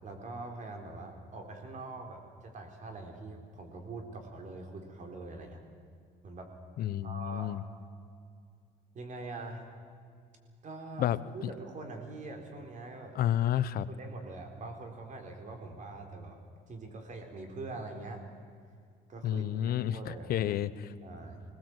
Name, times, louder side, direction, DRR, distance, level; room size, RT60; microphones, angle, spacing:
voice 1, 0.0-5.6 6.2-6.5 7.0-7.5 8.9-9.7 10.6-11.1 11.3-13.2 13.9-16.4 16.7-18.2 19.1-20.4 21.0-21.4, right 2 dB, 45° right, 4 dB, 4.2 m, -43 dB
voice 2, 6.8-7.6 11.0-11.2 11.4-11.5 13.1-13.9 19.2-20.9, left 11 dB, 60° left, 14 dB, 0.9 m, -30 dB
22.0 x 19.0 x 8.1 m, 2.3 s
cardioid pair, 110°, 17 cm